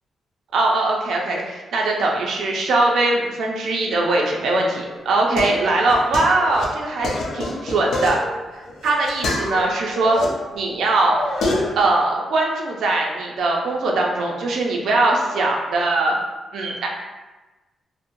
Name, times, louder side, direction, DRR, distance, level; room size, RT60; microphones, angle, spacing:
voice 1, 0.5-8.2 8.8-10.2 10.5-11.2 11.8-16.1 16.5-16.9, right 2 dB, 75° right, -1 dB, 0.4 m, -21 dB
sound 1, 4.8-10.3 10.7-11.8, left 2 dB, 75° left, 0.4 m, -27 dB
2.9 x 2.0 x 2.5 m, 1.2 s
wide cardioid pair, 160°, 0 cm